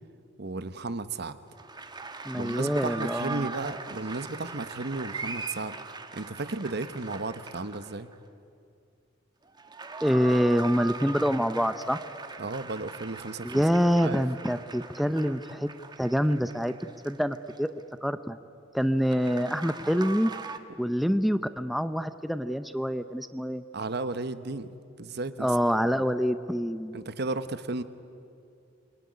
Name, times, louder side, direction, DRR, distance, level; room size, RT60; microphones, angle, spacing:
voice 1, 0.4-1.4 2.3-5.8 6.1-8.1 12.4-13.6 14.0-14.2 23.7-25.5 25.9-26.0 26.9-27.8, right 3 dB, 60° right, 12 dB, 1.1 m, -34 dB
sound 1, 1.6-8.1 9.5-17.8 19.0-20.6, right 4 dB, 25° right, 1.2 m, -40 dB
voice 2, 2.3-3.5 10.0-12.0 13.4-15.7 16.0-16.7 17.0-17.7 18.0-18.4 18.7-20.3 20.8-23.6 25.4-27.0, equal, ahead, 10 dB, 0.6 m, -26 dB
27.5 x 21.5 x 9.7 m, 2.5 s
head